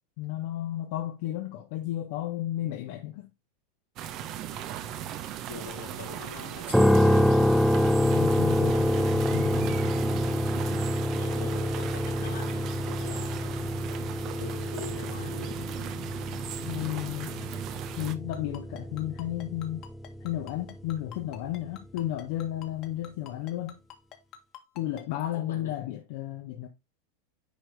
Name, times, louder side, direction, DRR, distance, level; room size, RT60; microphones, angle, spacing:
voice 1, 0.2-3.3 8.0-9.8 10.4-10.5 16.6-17.4 18.0-19.8 20.2-23.8 24.7-26.7, left 13 dB, 65° left, 1.3 m, -33 dB
sound 1, 4.0-18.2, right 10 dB, 45° right, 1.0 m, -37 dB
voice 2, 5.5-7.4 10.6-13.6 14.2-15.7 24.8-25.8, left 6 dB, 85° left, 3.7 m, -44 dB
sound 2, 6.7-20.7, left 1 dB, ahead, 0.6 m, -27 dB
Ringtone, 18.3-25.0, left 11 dB, 45° left, 1.9 m, -46 dB
10.0 x 4.6 x 3.4 m
hypercardioid pair, 110°, 0 cm